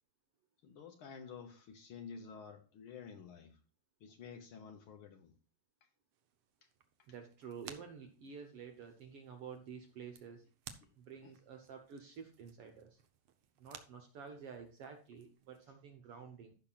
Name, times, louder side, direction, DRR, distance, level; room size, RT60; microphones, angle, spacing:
voice 1, 0.6-3.6 4.0-5.3 11.2-11.3, left 6 dB, 85° left, 4 dB, 1.1 m, -51 dB
Ripping Blu-Tack, 6.1-15.7, right 9 dB, 85° right, 1.2 m, -59 dB
voice 2, 7.1-10.5 11.0-13.0 13.6-16.5, right 6 dB, 65° right, 5 dB, 1.6 m, -50 dB
15.5 x 5.8 x 2.4 m, 0.36 s
omnidirectional pair, 3.5 m